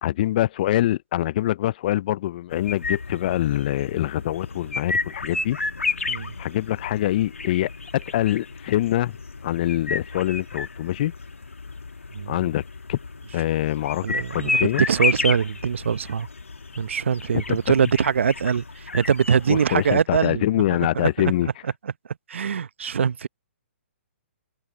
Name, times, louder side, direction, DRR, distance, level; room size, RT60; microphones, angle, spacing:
voice 1, 0.0-5.6 6.4-9.2 9.4-11.1 12.3-12.6 12.9-13.0 13.3-14.1 14.3-14.8 17.5-17.6 19.5-21.5, left 14 dB, 40° left, 0.4 m, -24 dB
sound 1, 2.5-19.9, left 3 dB, 85° left, 2.0 m, -32 dB
voice 2, 14.0-16.3 16.8-20.4 20.9-21.1 22.3-23.3, right 7 dB, 65° right, 0.9 m, -23 dB
figure-of-eight pair, 130°, 7 cm